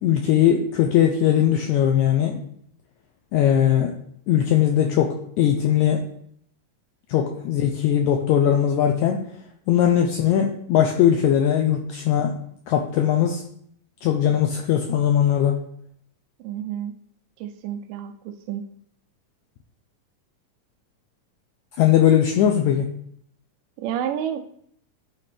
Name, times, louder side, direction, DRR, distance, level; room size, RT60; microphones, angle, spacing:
voice 1, 0.0-2.4 3.3-3.9 4.3-6.0 7.1-9.2 9.7-12.4 12.7-13.4 14.0-15.6 21.8-22.9, left 10 dB, 90° left, 3 dB, 1.7 m, -19 dB
voice 2, 16.4-16.9 17.4-18.1 18.5-18.7 23.8-24.4, right 9 dB, 80° right, 7 dB, 2.1 m, -29 dB
10.5 x 4.3 x 3.3 m, 0.68 s
omnidirectional pair, 3.9 m